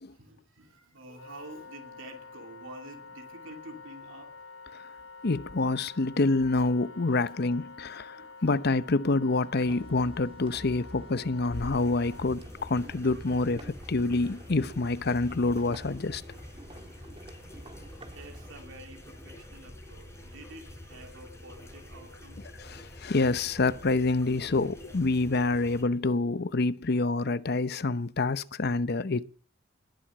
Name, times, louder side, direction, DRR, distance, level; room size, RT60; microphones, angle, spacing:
voice 1, 0.1-4.4 8.2-8.4 13.2-13.3 18.0-22.5, right 1 dB, 80° right, 2.9 m, -48 dB
Wind instrument woodwind instrument, 1.1-12.3, left 4 dB, 90° left, 2.6 m, -48 dB
voice 2, 5.2-16.2 22.6-29.2, left 3 dB, 55° left, 0.8 m, -27 dB
sound 1, 9.6-18.5, right 1 dB, 30° right, 1.9 m, -48 dB
sound 2, 11.5-25.8, left 1 dB, 15° left, 4.8 m, -46 dB
20.5 x 7.7 x 8.6 m
head